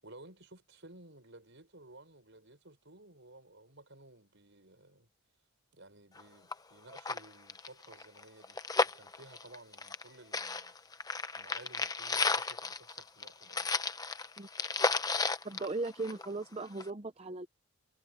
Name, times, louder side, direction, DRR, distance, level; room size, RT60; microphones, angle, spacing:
voice 1, 0.0-5.1 5.7-10.8 11.3-13.7, right 2 dB, 55° right, 6.7 m, -56 dB
sound 1, 6.2-6.3 6.5-6.6 6.9-10.1 10.3-16.4 16.8-16.9, left 3 dB, 15° left, 0.9 m, -33 dB
voice 2, 15.4-17.5, right 3 dB, 25° right, 0.6 m, -37 dB
head